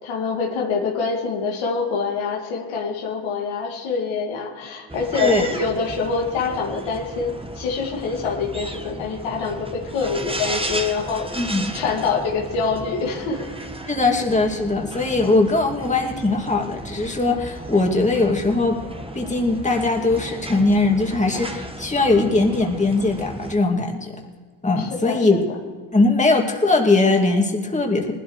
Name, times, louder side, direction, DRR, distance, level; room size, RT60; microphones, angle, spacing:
voice 1, 0.0-11.5 11.7-13.5 24.8-25.4, left 5 dB, 85° left, 0 dB, 2.3 m, -25 dB
sound 1, 4.9-23.5, right 1 dB, 10° right, 1.4 m, -34 dB
voice 2, 11.3-11.7 13.9-18.8 19.1-24.1 24.6-25.4 25.9-28.1, left 3 dB, 15° left, 1 dB, 2.3 m, -20 dB
19.5 x 12.5 x 3.2 m, 1.5 s
supercardioid pair, 65°, 45 cm